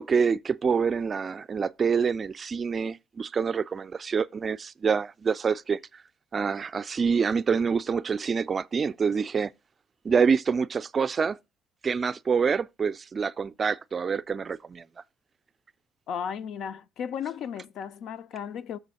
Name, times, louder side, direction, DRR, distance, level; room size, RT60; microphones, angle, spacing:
voice 1, 0.0-6.0 6.3-9.5 10.0-11.4 11.8-14.8, right 6 dB, 40° right, 0.4 m, -26 dB
voice 2, 16.1-18.8, left 8 dB, 65° left, 0.5 m, -35 dB
6.8 x 6.1 x 4.1 m
supercardioid pair, 65°, 0 cm